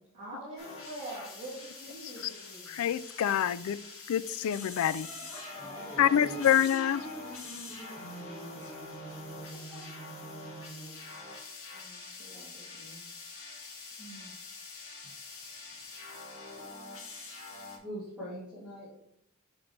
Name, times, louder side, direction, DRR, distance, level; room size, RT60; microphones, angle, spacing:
voice 1, 0.1-2.7 5.5-6.0 11.7-13.1 14.0-14.3 15.2-16.2 16.6-17.2, right 1 dB, 35° right, -10 dB, 2.4 m, -47 dB
sound 1, 0.6-17.8, left 3 dB, 70° left, 1.7 m, -45 dB
voice 2, 2.7-3.8 4.1-5.1 6.0-7.0, left 10 dB, 85° left, 18 dB, 0.3 m, -26 dB
sound 2, 5.0-11.0, right 1 dB, 20° left, 1.6 m, -46 dB
voice 3, 5.0-6.5 6.8-7.0 9.4-10.9 11.5-12.1 17.8-18.9, equal, 5° right, -10 dB, 2.4 m, -46 dB
6.0 x 5.6 x 3.2 m, 0.72 s
head